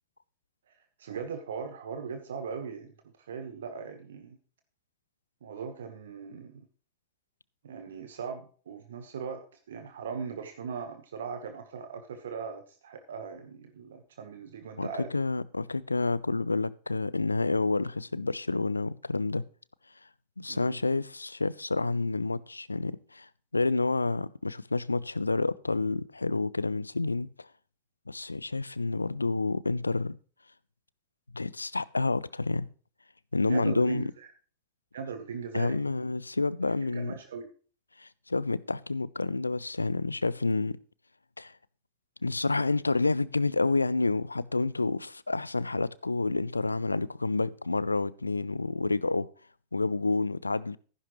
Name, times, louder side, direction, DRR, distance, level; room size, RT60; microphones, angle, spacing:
voice 1, 1.0-4.4 5.4-6.7 7.6-9.4 9.7-15.1 20.5-20.8 33.5-34.3 34.9-36.1 36.8-37.5, right 6 dB, 65° right, 1.3 m, -39 dB
voice 2, 14.8-19.5 20.4-27.5 28.1-30.2 31.3-32.7 33.3-34.1 35.5-37.2 38.0-40.8 41.4-41.5 42.2-49.3 49.7-50.8, left 3 dB, 80° left, 0.5 m, -29 dB
14.0 x 10.5 x 3.2 m
figure-of-eight pair, 90°, 0 cm